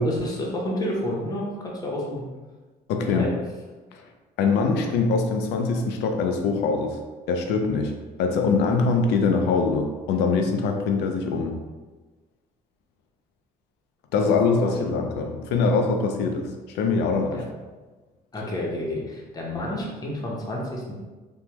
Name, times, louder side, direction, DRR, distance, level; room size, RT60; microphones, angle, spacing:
voice 1, 0.0-2.3 3.1-3.3 14.6-14.8 17.3-17.4 18.3-21.0, left 1 dB, 20° left, -3 dB, 0.7 m, -30 dB
voice 2, 2.9-3.3 3.9-4.0 4.4-7.0 7.3-7.9 8.2-11.5 14.1-17.4, left 4 dB, 85° left, 4 dB, 0.4 m, -23 dB
3.4 x 2.2 x 2.9 m, 1.3 s
cardioid pair, 110°, 17 cm